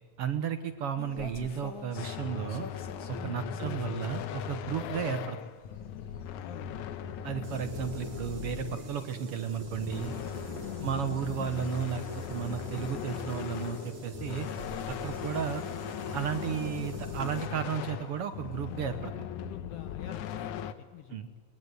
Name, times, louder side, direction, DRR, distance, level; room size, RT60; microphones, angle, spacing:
voice 1, 0.2-2.7 3.1-5.4 7.2-10.1 10.8-14.5 14.9-15.6 16.1-19.3 21.1-21.3, right 8 dB, 65° right, 9 dB, 1.6 m, -34 dB
sound 1, 1.0-19.0, left 3 dB, 45° left, 2.4 m, -51 dB
sound 2, 2.0-9.1 9.5-20.7, left 9 dB, 85° left, 2.4 m, -39 dB
voice 2, 6.4-7.0 10.7-10.9 15.2-15.3 19.4-21.4, left 12 dB, 70° left, 10 dB, 1.5 m, -48 dB
sound 3, 7.4-17.5, right 2 dB, 85° right, 5.1 m, -45 dB
22.0 x 19.5 x 8.1 m, 1.5 s
omnidirectional pair, 3.4 m